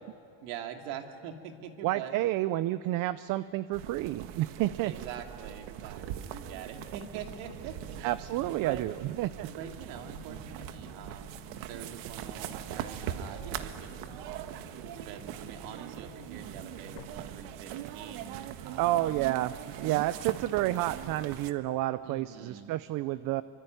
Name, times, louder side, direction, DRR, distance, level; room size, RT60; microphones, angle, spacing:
voice 1, 0.4-2.1 4.8-8.1 8.4-9.1 9.4-11.3 11.7-19.1 22.0-22.7, right 8 dB, 90° right, 4 dB, 2.7 m, -44 dB
voice 2, 1.8-4.9 8.0-8.9 9.2-9.5 18.8-23.4, right 15 dB, 45° right, 15 dB, 0.6 m, -30 dB
sound 1, 3.7-21.5, right 10 dB, 65° right, 1.5 m, -41 dB
sound 2, 7.0-17.0, left 3 dB, 75° left, 4.8 m, -53 dB
25.0 x 24.5 x 9.4 m, 2.6 s
cardioid pair, 155°, 48 cm